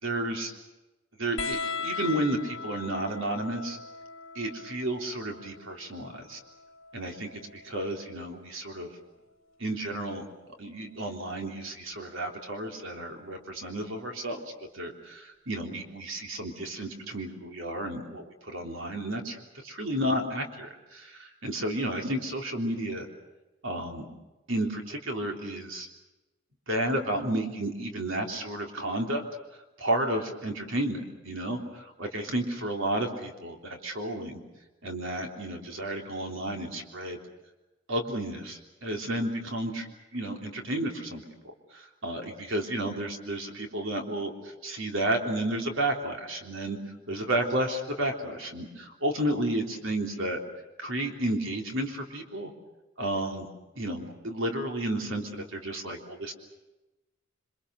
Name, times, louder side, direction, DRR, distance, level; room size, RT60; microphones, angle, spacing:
voice 1, 0.0-0.5 1.2-3.8 4.3-6.4 6.9-8.9 9.6-10.2 10.6-14.4 14.7-23.1 23.6-24.1 24.5-25.9 26.7-29.2 29.8-34.4 34.8-37.2 37.9-39.9 40.1-41.2 41.7-50.4 50.8-52.5 53.0-53.5 53.7-56.3, right 1 dB, 70° right, 2 dB, 3.5 m, -32 dB
sound 1, 1.4-8.4 9.8-10.6 11.9-12.0, left 5 dB, 75° left, 1.6 m, -40 dB
27.5 x 26.0 x 6.5 m, 1.1 s
head